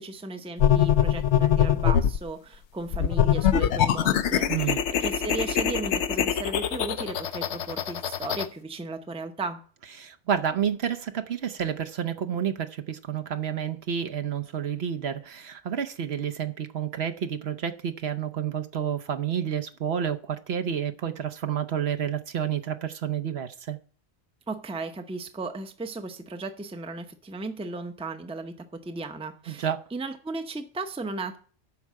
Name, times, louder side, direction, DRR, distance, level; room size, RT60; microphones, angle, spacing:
voice 1, 0.0-9.6 24.5-31.4, right 3 dB, 5° right, 0.6 m, -36 dB
sound 1, 0.6-2.2 2.9-8.5, left 9 dB, 75° left, 1.0 m, -23 dB
voice 2, 4.5-4.8 10.0-23.8 29.5-29.8, right 8 dB, 65° right, 1.0 m, -30 dB
12.0 x 4.7 x 7.4 m
omnidirectional pair, 1.2 m